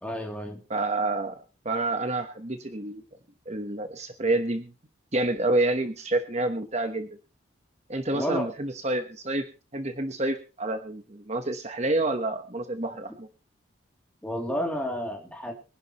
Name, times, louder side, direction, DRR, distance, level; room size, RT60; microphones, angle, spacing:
voice 1, 0.0-0.6 8.1-8.5 14.2-15.5, equal, 5° left, 2.8 m, -31 dB
voice 2, 0.7-1.4 1.6-3.0 3.5-4.7 5.1-7.1 7.9-9.5 9.7-13.3, right 2 dB, 35° right, 1.2 m, -28 dB
23.5 x 11.0 x 3.0 m
head